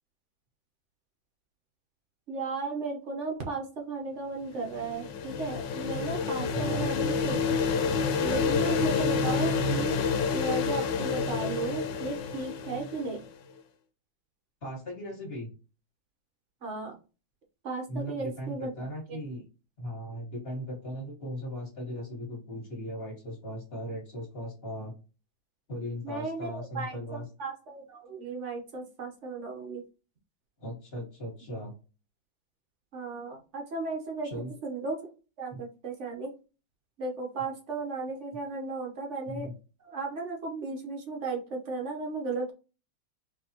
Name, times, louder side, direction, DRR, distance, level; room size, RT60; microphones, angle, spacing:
voice 1, 2.3-7.4 8.2-10.0 10.3-13.2 16.6-16.9 17.6-18.7 19.1-19.2 26.0-29.8 32.9-34.3 34.6-35.0 35.4-36.3 37.0-39.5 39.8-42.5, right 3 dB, 45° right, 1 dB, 1.1 m, -35 dB
sound 1, 4.5-13.2, left 5 dB, 75° left, 1.2 m, -29 dB
voice 2, 6.5-6.9 14.6-15.5 17.9-19.4 19.8-25.0 25.7-27.3 30.6-31.7 34.2-34.5 35.5-35.6 39.3-39.5, equal, 30° left, -2 dB, 1.8 m, -38 dB
4.7 x 3.3 x 2.9 m, 0.33 s
omnidirectional pair, 2.2 m